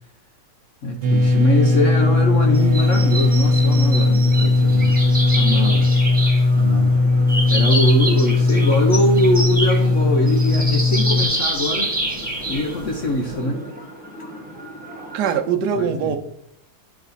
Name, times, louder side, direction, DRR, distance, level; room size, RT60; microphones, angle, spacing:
voice 1, 0.8-5.0 5.4-5.9 6.6-7.0 7.5-12.0 12.5-13.6 15.7-16.2, left 1 dB, 70° left, 0.7 m, -23 dB
sound 1, 1.0-11.2, left 2 dB, 85° right, 1.7 m, -17 dB
sound 2, 1.1-13.4, equal, 20° left, 0.8 m, -38 dB
sound 3, 2.5-15.3, right 1 dB, 5° right, 1.4 m, -28 dB
voice 2, 15.1-16.2, right 7 dB, 60° right, 1.2 m, -22 dB
10.5 x 4.2 x 4.0 m
omnidirectional pair, 2.4 m